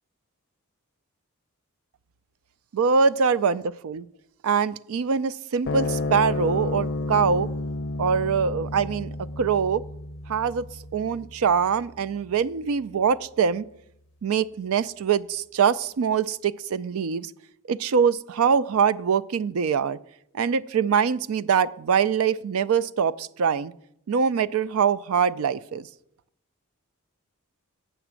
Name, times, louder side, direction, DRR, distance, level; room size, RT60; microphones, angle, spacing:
voice 1, 2.7-4.1 4.4-7.5 8.0-9.8 10.3-10.7 10.9-13.6 14.2-17.3 17.7-20.0 20.4-23.7 24.1-25.8, right 6 dB, 70° right, 17 dB, 0.4 m, -23 dB
sound 1, 5.6-12.3, left 2 dB, 55° left, 0.5 m, -31 dB
8.0 x 5.9 x 7.5 m, 0.75 s
head